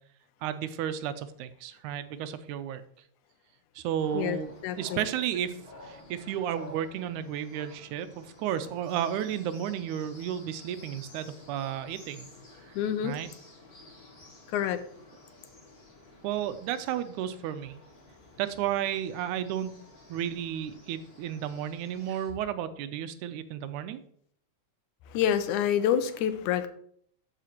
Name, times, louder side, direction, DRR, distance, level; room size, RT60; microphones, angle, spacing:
voice 1, 0.4-2.8 3.8-4.5 4.8-5.6 5.8-12.3 12.7-12.8 13.0-13.3 16.2-17.7 18.4-19.7 20.1-24.0, right 10 dB, 85° right, 11 dB, 2.0 m, -33 dB
sound 1, 4.0-22.3, left 1 dB, 40° left, 0.8 m, -52 dB
voice 2, 4.6-5.0 12.8-13.1 14.5-14.8 25.1-26.7, left 9 dB, 85° left, 11 dB, 2.1 m, -27 dB
13.0 x 5.0 x 2.9 m, 0.63 s
omnidirectional pair, 3.5 m